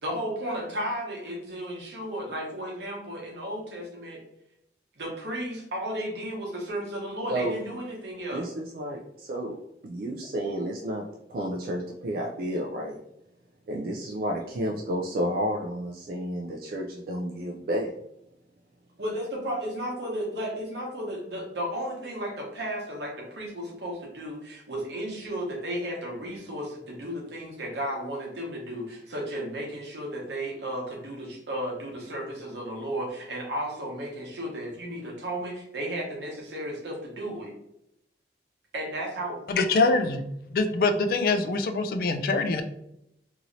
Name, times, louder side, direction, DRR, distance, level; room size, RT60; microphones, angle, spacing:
voice 1, 0.0-4.2 5.0-8.4 19.0-37.5 38.7-39.5, right 1 dB, 80° right, -1 dB, 1.0 m, -34 dB
voice 2, 8.3-9.6 9.8-11.0 11.3-13.0 13.7-17.9, equal, 55° right, -1 dB, 0.3 m, -31 dB
voice 3, 39.5-40.2 40.5-42.6, left 3 dB, 55° left, 7 dB, 0.3 m, -24 dB
3.0 x 2.7 x 2.6 m, 0.80 s
head